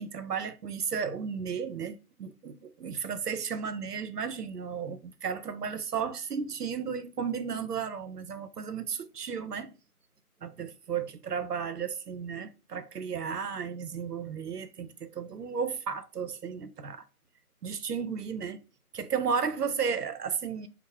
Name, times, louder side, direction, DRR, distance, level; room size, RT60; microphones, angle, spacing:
voice 1, 0.0-9.8 10.4-17.0 17.6-18.6 18.9-20.7, right 6 dB, 85° right, 0.6 m, -34 dB
3.2 x 2.1 x 3.1 m
figure-of-eight pair, 165°, 46 cm